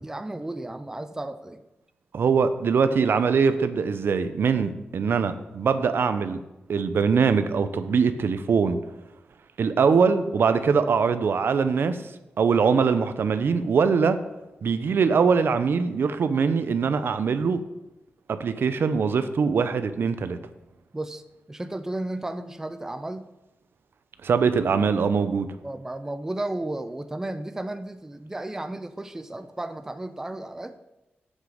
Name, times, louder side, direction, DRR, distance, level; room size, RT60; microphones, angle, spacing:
voice 1, 0.0-1.6 20.9-21.2 21.5-23.3 25.6-30.8, right 1 dB, 10° right, 10 dB, 0.4 m, -33 dB
voice 2, 2.1-6.4 6.7-8.8 9.6-12.0 12.4-14.2 14.6-17.6 18.3-20.4 24.2-25.5, right 5 dB, 65° right, 11 dB, 0.5 m, -22 dB
7.4 x 6.5 x 5.0 m, 0.97 s
wide cardioid pair, 120°, 4 cm